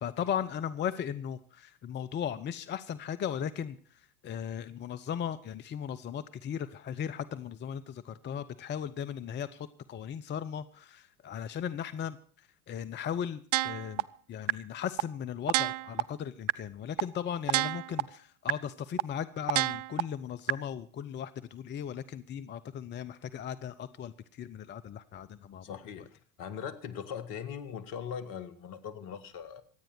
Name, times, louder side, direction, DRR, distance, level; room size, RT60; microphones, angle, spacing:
voice 1, 0.0-26.0, left 8 dB, 25° left, 14 dB, 0.7 m, -37 dB
sound 1, 13.5-14.0 14.5-14.6 15.0-15.1 15.5-16.0 16.5-16.6 17.0-17.1 17.5-18.0 18.5-18.6 19.0-19.1 19.5-20.0 20.5-20.6, right 17 dB, 60° right, 0.7 m, -27 dB
voice 2, 25.6-26.1 26.4-29.6, left 8 dB, 50° left, 13 dB, 1.9 m, -40 dB
25.5 x 9.1 x 4.4 m, 0.43 s
hypercardioid pair, 85°, 43 cm